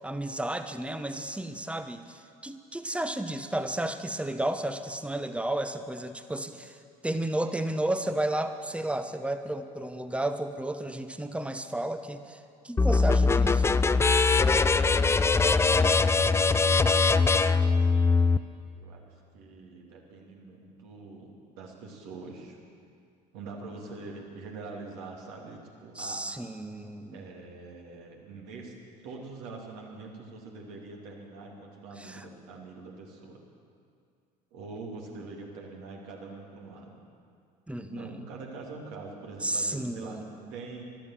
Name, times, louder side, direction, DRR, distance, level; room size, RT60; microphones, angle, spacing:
voice 1, 0.0-6.8 7.0-12.4 12.6-13.8 26.0-27.2 32.0-32.2 37.7-38.2 39.4-40.5, right 1 dB, 5° right, 9 dB, 1.0 m, -32 dB
sound 1, 12.8-18.4, left 4 dB, 10° left, 0.4 m, -22 dB
voice 2, 15.0-16.8 18.7-22.6 23.3-26.2 27.1-28.8 29.0-33.4 34.5-37.0 37.9-40.2 40.5-40.8, right 3 dB, 65° right, 0 dB, 2.6 m, -44 dB
13.5 x 12.5 x 7.5 m, 2.3 s
figure-of-eight pair, 60°, 21 cm